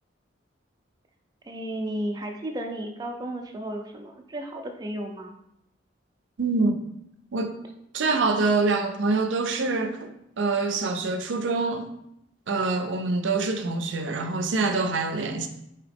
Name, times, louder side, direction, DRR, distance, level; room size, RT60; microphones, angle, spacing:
voice 1, 1.5-5.4, right 1 dB, 20° right, 0.3 m, -33 dB
voice 2, 6.4-6.8 7.3-7.6 7.9-10.1 10.4-11.9 12.5-15.5, right 3 dB, 80° right, 0.5 m, -25 dB
4.9 x 2.8 x 3.4 m
head